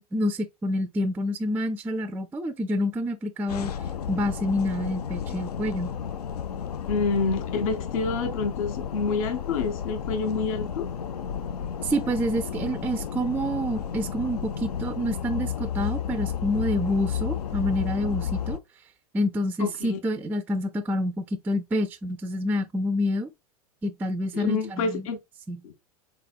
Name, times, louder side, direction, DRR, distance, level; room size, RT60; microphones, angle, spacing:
voice 1, 0.0-3.7 4.1-5.9 11.8-18.6 19.1-23.3 23.8-25.1 25.5-25.6, left 1 dB, 10° right, 0.3 m, -28 dB
sound 1, 3.5-18.6, left 8 dB, 85° left, 0.5 m, -32 dB
voice 2, 6.9-10.8 19.6-20.0 24.3-25.2 25.6-25.7, left 4 dB, 60° left, 0.8 m, -27 dB
4.1 x 3.7 x 2.3 m
hypercardioid pair, 105°, 20 cm